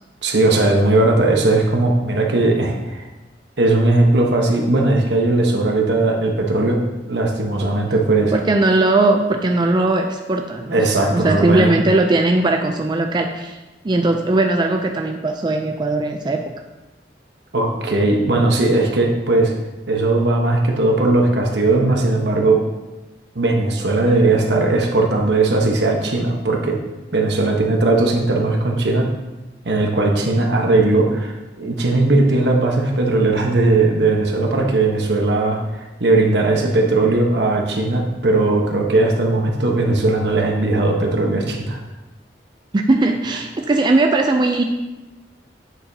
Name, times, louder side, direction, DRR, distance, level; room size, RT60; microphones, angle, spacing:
voice 1, 0.2-3.1 3.6-8.3 10.7-11.7 17.5-19.5 19.9-22.6 23.3-26.8 27.1-29.1 29.6-41.8, right 2 dB, 75° right, 1 dB, 1.1 m, -18 dB
voice 2, 8.3-10.8 11.1-13.6 13.8-16.4 42.7-44.6, right 2 dB, 25° right, 3 dB, 0.4 m, -18 dB
8.3 x 6.9 x 2.8 m, 1.1 s
head